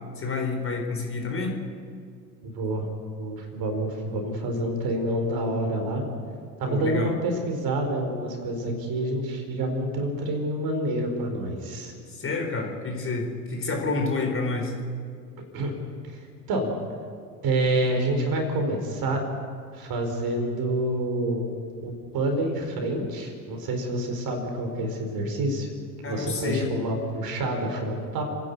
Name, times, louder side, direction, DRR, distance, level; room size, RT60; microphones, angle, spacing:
voice 1, 0.2-1.6 6.7-7.1 12.1-14.7 26.0-26.7, left 3 dB, 25° left, 2 dB, 4.2 m, -29 dB
voice 2, 2.4-2.9 3.2-6.1 6.6-11.9 15.5-15.7 16.0-16.2 16.5-16.7 17.4-19.2 19.7-21.5 21.8-25.7 26.0-28.2, right 1 dB, 45° right, 4 dB, 4.6 m, -27 dB
29.5 x 10.5 x 8.5 m, 2.1 s
hypercardioid pair, 75°, 48 cm